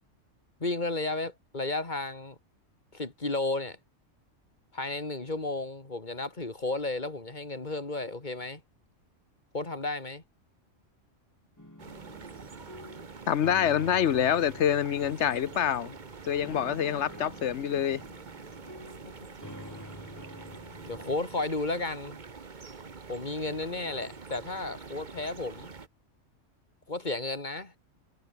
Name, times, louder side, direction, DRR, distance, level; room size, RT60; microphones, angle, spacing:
voice 1, 0.6-2.4 2.9-3.8 4.7-8.6 9.5-10.2 19.0-19.1 20.9-22.2 23.1-25.7 26.9-27.7, left 2 dB, 35° left, 2.8 m, -33 dB
sound 1, 11.6-21.2, left 1 dB, 15° left, 4.8 m, -48 dB
sound 2, 11.8-25.9, right 4 dB, 40° right, 1.4 m, -46 dB
voice 2, 13.3-15.9 16.3-18.0, left 9 dB, 65° left, 1.1 m, -26 dB
omnidirectional pair, 1.3 m